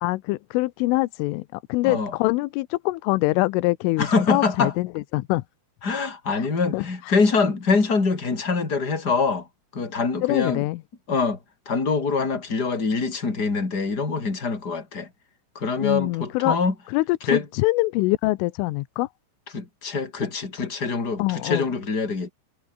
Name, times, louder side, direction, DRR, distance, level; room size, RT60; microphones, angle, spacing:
voice 1, 0.0-5.4 6.7-6.9 10.2-10.8 15.8-16.6 16.9-19.1 21.2-21.7, left 21 dB, 80° left, 3.3 m, -24 dB
voice 2, 1.8-2.1 4.0-4.7 5.8-9.5 9.7-10.7 11.1-11.4 11.7-15.1 15.5-16.7 17.3-17.4 19.5-22.3, left 4 dB, 20° left, 4.4 m, -24 dB
omnidirectional pair, 5.8 m